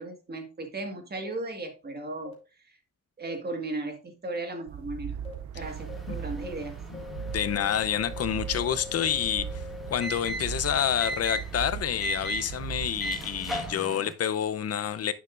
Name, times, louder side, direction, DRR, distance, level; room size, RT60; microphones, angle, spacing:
voice 1, 0.0-2.3 3.2-5.2 5.5-6.8, right 2 dB, 35° right, 1.7 m, -36 dB
sound 1, 1.2-1.3 2.2-2.3 3.3-3.4 4.3-4.4 5.2-5.3 5.9-6.0 6.4-6.5 6.9-10.1, left 6 dB, 20° left, 3.1 m, -43 dB
sound 2, 4.7-13.7, right 9 dB, 70° right, 0.5 m, -39 dB
sound 3, 5.6-14.1, right 1 dB, ahead, 1.4 m, -39 dB
voice 2, 6.9-15.1, left 9 dB, 55° left, 0.7 m, -28 dB
9.4 x 6.9 x 2.5 m
cardioid pair, 125°, 29 cm